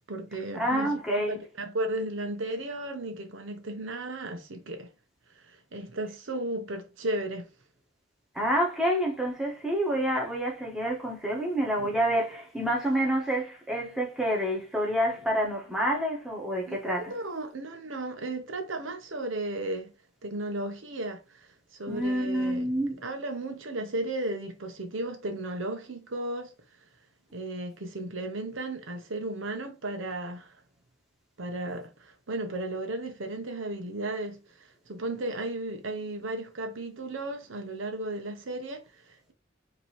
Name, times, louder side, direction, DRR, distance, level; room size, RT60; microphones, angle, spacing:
voice 1, 0.0-4.9 5.3-7.5 16.7-19.9 20.2-22.7 23.0-26.5 27.3-30.6 31.4-39.3, right 2 dB, 85° right, 1.0 m, -35 dB
voice 2, 0.5-1.4 8.3-17.1 21.9-23.0, equal, ahead, 1.6 m, -28 dB
5.3 x 3.0 x 3.2 m
head